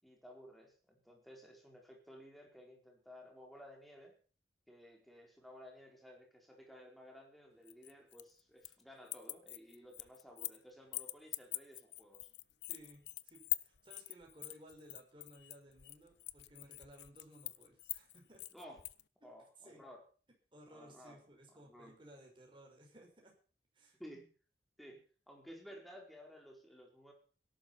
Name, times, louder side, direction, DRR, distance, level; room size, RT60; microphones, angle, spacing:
voice 1, 0.0-4.2 4.7-12.3 18.5-18.9 19.2-20.0 20.7-21.2 21.5-22.0 24.0-24.3 24.8-27.1, equal, ahead, 0 dB, 4.4 m, -55 dB
sound 1, 7.7-8.8 9.1-10.6 10.9-19.0, left 18 dB, 75° left, 0.7 m, -43 dB
voice 2, 12.7-18.4 19.2-19.3 19.6-19.8 20.5-23.3 23.7-24.0, right 1 dB, 30° right, 1 dB, 5.9 m, -59 dB
18.0 x 12.0 x 5.9 m, 0.41 s
head